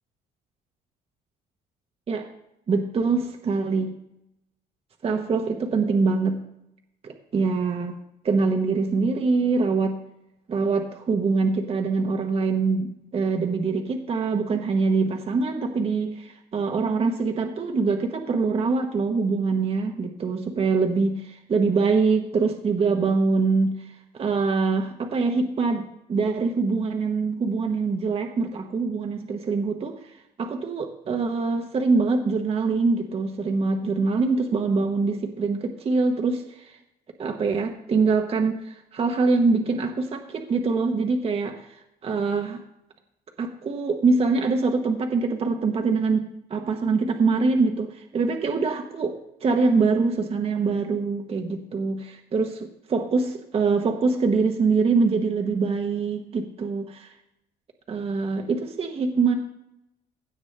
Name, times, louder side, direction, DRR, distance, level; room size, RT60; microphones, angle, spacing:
voice 1, 2.7-4.0 5.0-6.4 7.0-7.9 8.2-10.0 10.5-23.8 24.1-30.0 30.4-36.7 37.2-42.6 43.4-57.1 57.9-59.3, right 4 dB, 35° right, 3 dB, 1.0 m, -24 dB
16.5 x 7.1 x 3.3 m, 0.83 s
cardioid pair, 110°, 17 cm